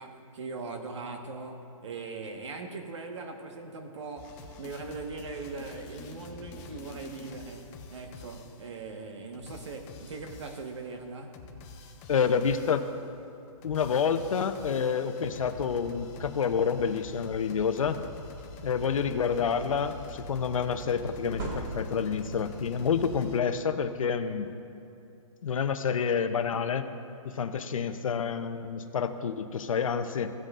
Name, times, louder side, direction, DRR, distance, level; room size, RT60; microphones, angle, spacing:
voice 1, 0.0-11.5, right 3 dB, 55° right, 4 dB, 1.4 m, -40 dB
sound 1, 4.2-8.7 9.3-10.8 11.3-13.0 13.5-23.4, left 2 dB, 15° left, 0.5 m, -46 dB
voice 2, 12.1-12.8 13.6-18.0 18.6-24.5 25.4-26.9 27.2-30.3, left 6 dB, 70° left, 10 dB, 0.7 m, -28 dB
sound 2, 18.3-19.3 21.0-22.2, right 3 dB, 30° right, 1.7 m, -40 dB
16.5 x 7.7 x 2.5 m, 2.6 s
hypercardioid pair, 160°, 18 cm